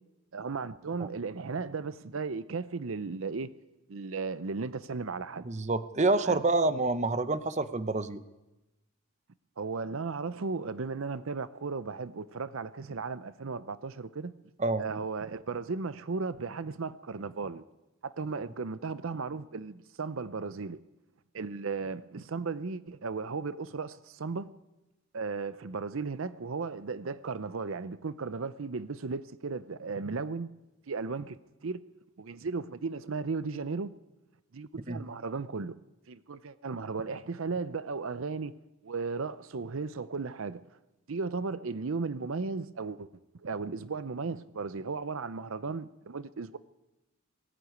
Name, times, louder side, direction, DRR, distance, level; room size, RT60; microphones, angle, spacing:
voice 1, 0.3-3.5 3.9-5.5 6.2-6.4 9.6-14.3 14.8-17.6 18.0-20.8 21.3-24.5 25.1-30.5 30.9-31.4 31.6-31.8 32.2-33.9 34.5-35.8 36.1-38.5 38.8-40.8 41.1-43.1 43.4-46.6, right 4 dB, 65° right, 0.6 m, -35 dB
voice 2, 5.4-8.2 14.6-14.8 34.9-35.0, right 2 dB, 30° right, 0.8 m, -27 dB
19.5 x 14.5 x 9.4 m
head